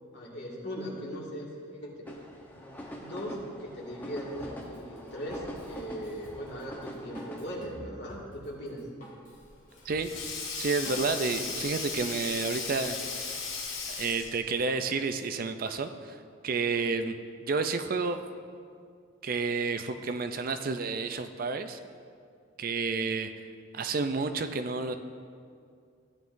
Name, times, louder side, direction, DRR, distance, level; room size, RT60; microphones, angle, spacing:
voice 1, 0.1-2.0 2.5-2.8 3.0-8.8, equal, 60° left, -4 dB, 2.2 m, -39 dB
sound 1, 2.1-7.5, equal, 10° left, 0.9 m, -44 dB
Drum kit, 4.4-11.6, equal, 45° left, 2.4 m, -50 dB
Sink (filling or washing), 9.4-14.5, left 5 dB, 75° left, 1.8 m, -36 dB
voice 2, 10.6-13.4 13.9-17.2 17.4-18.2 19.2-21.8 22.6-23.5 23.7-25.0, right 4 dB, 45° right, 8 dB, 0.4 m, -30 dB
16.0 x 9.3 x 2.6 m, 2.3 s
head